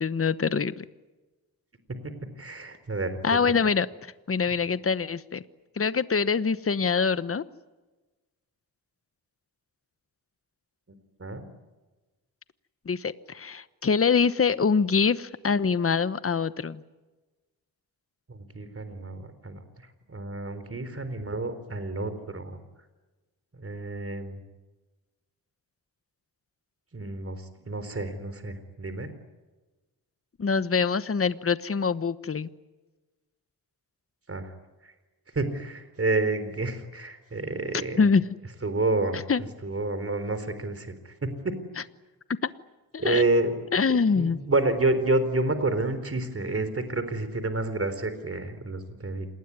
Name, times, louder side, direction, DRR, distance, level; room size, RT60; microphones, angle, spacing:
voice 1, 0.0-0.8 3.2-3.9 4.3-5.4 5.8-7.4 12.9-16.8 30.4-32.5 38.0-38.3 39.1-39.4 41.8-41.9 42.4-42.5 42.9-43.2 43.7-44.4, left 5 dB, 35° left, 14 dB, 1.1 m, -24 dB
voice 2, 2.0-3.2 11.2-11.4 18.3-19.6 20.1-22.6 23.6-24.4 26.9-29.1 34.3-34.5 35.4-38.0 38.6-39.2 39.6-40.9 41.2-41.5 43.0-43.5 44.1-49.3, right 2 dB, 35° right, 11 dB, 4.0 m, -29 dB
27.5 x 20.0 x 9.7 m, 1.2 s
wide cardioid pair, 85°, 39 cm